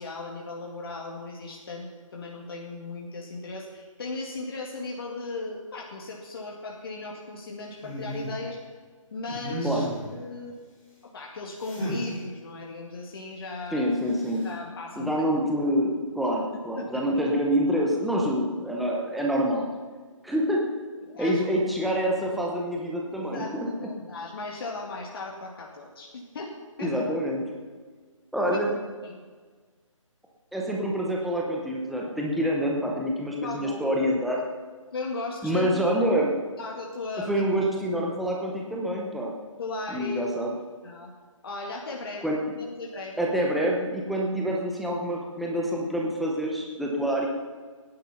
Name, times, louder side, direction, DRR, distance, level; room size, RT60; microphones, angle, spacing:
voice 1, 0.0-8.6 9.1-10.5 11.1-13.8 14.4-15.3 16.5-17.0 21.0-21.5 23.1-27.0 28.5-28.6 29.0-29.2 33.4-34.1 34.9-35.8 36.1-36.2 36.6-37.4 39.6-40.3 40.8-41.1 41.4-42.3 42.8-43.2 43.6-43.7, left 3 dB, 45° left, -1 dB, 2.1 m, -37 dB
sound 1, 7.8-8.4 9.2-10.2 11.6-12.1 14.1-14.5, equal, 25° left, 5.0 m, -33 dB
voice 2, 13.7-14.5 15.0-19.7 20.2-20.6 21.2-23.7 26.8-27.5 28.3-28.7 30.5-34.4 35.4-36.3 37.3-39.3 39.9-40.5 42.2-42.4 43.2-47.3, equal, ahead, -2 dB, 0.7 m, -26 dB
18.0 x 10.5 x 5.8 m, 1.5 s
hypercardioid pair, 165°, 17 cm